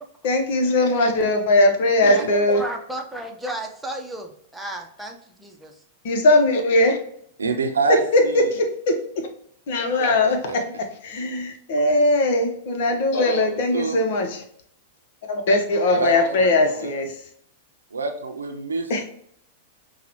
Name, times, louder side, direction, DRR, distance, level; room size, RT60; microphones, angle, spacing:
voice 1, 0.2-2.6 6.0-7.0 7.9-9.3 9.7-14.4 15.3-17.3 18.9-19.0, left 2 dB, 60° left, 0.9 m, -20 dB
voice 2, 2.1-5.8, right 1 dB, 5° right, 0.7 m, -34 dB
voice 3, 7.4-8.4 10.0-10.8 13.7-14.0 15.9-16.9 17.9-19.0, right 4 dB, 90° right, 0.6 m, -27 dB
5.7 x 2.3 x 3.0 m
hypercardioid pair, 105°, 0 cm